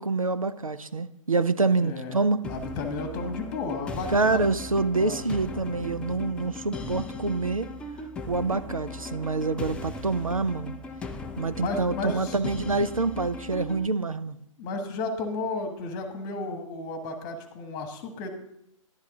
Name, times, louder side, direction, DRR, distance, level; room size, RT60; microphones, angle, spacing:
voice 1, 0.0-2.4 4.1-7.7 8.3-10.7 11.4-14.4, right 3 dB, 85° right, 12 dB, 0.7 m, -26 dB
voice 2, 1.7-4.5 4.9-5.2 11.6-12.4 14.6-18.3, left 3 dB, 25° left, 6 dB, 1.6 m, -33 dB
sound 1, 2.4-13.9, left 2 dB, 5° left, 0.4 m, -38 dB
11.5 x 10.5 x 3.8 m, 0.76 s
figure-of-eight pair, 125°, 17 cm